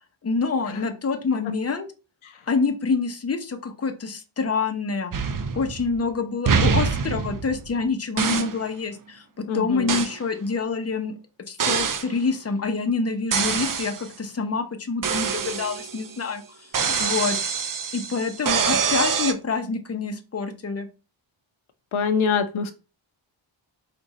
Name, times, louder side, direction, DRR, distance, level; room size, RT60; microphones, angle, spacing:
voice 1, 0.2-1.9 2.5-11.1 11.5-17.4 17.9-20.9, left 4 dB, 30° left, 6 dB, 0.8 m, -27 dB
sound 1, 5.1-6.1 6.5-7.8 8.2-8.6 9.9-10.2 11.6-12.1 13.3-14.1 15.0-16.1 16.7-19.3, right 6 dB, 45° right, 0.6 m, -25 dB
voice 2, 9.5-10.0 21.9-22.7, left 6 dB, 80° left, 9 dB, 0.6 m, -24 dB
4.9 x 2.6 x 4.0 m, 0.32 s
wide cardioid pair, 80°, 48 cm